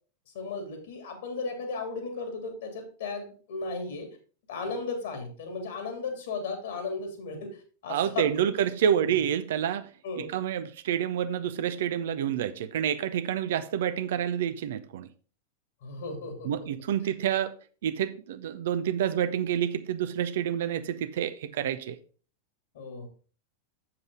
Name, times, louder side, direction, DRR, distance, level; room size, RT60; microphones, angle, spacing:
voice 1, 0.3-4.1 4.5-8.5 8.9-9.1 10.0-10.3 15.8-16.7 22.7-23.1, left 4 dB, 60° left, 2.7 m, -35 dB
voice 2, 7.9-9.9 10.2-15.1 16.4-17.5 17.8-22.0, right 9 dB, 55° right, 0.6 m, -28 dB
7.8 x 7.6 x 3.7 m
figure-of-eight pair, 90°, 0 cm